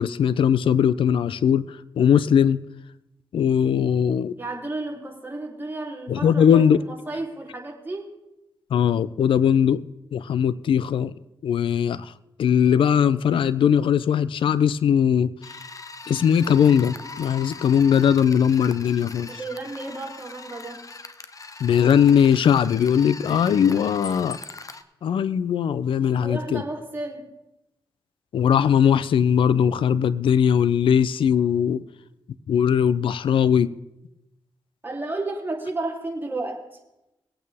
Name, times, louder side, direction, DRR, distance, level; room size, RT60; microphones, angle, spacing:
voice 1, 0.0-1.7 2.0-2.6 3.3-4.3 6.1-6.8 8.7-9.8 10.1-11.1 11.4-12.1 12.4-15.3 16.1-19.3 21.6-24.4 25.0-26.6 28.3-31.8 32.5-33.7, left 8 dB, 85° left, 17 dB, 0.4 m, -20 dB
voice 2, 4.4-8.1 19.3-20.8 26.0-27.3 34.8-36.6, right 2 dB, 25° right, -1 dB, 3.2 m, -32 dB
sound 1, 15.4-24.8, left 3 dB, 40° left, 0.9 m, -40 dB
20.5 x 8.8 x 3.5 m, 0.92 s
cardioid pair, 60°, 9 cm